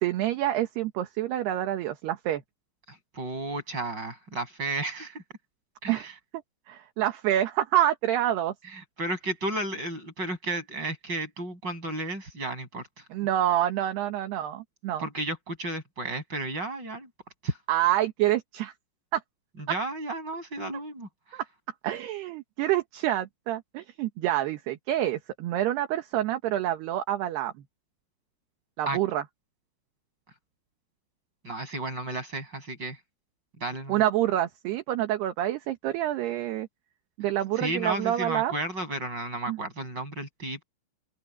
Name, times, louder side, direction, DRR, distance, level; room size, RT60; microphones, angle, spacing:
voice 1, 0.0-2.4 5.9-6.1 6.7-8.5 13.1-15.0 17.7-18.7 19.1-19.2 21.3-21.4 21.8-27.5 28.8-29.2 33.9-36.7 37.2-38.5 39.5-39.6, right 13 dB, 65° right, 2.9 m, -27 dB
voice 2, 2.9-5.2 5.8-6.1 8.7-13.0 15.0-17.1 17.4-17.6 19.7-21.4 28.9-29.0 31.4-33.0 33.6-34.0 37.6-40.6, right 2 dB, 20° right, 7.8 m, -33 dB
open air
omnidirectional pair, 5.9 m